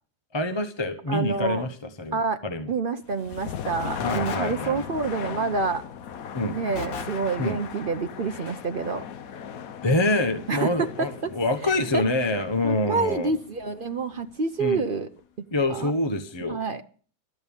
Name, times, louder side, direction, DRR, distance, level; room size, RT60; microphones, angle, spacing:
voice 1, 0.3-2.2 2.4-2.7 4.0-4.8 6.3-6.6 7.4-7.6 9.8-13.3 14.6-14.8 15.5-16.6, left 2 dB, 20° left, 7 dB, 0.8 m, -26 dB
voice 2, 1.1-1.7 2.1-2.4 2.7-5.8 6.5-9.0 10.5-11.3 11.6-12.0 12.6-15.1 15.7-15.9 16.5-16.9, right 4 dB, 65° right, 8 dB, 0.5 m, -28 dB
sound 1, 3.0-14.9, left 8 dB, 60° left, 1.1 m, -38 dB
sound 2, 4.1-5.3 6.8-7.9, left 4 dB, 85° left, 2.2 m, -38 dB
13.0 x 8.9 x 7.1 m, 0.42 s
omnidirectional pair, 2.0 m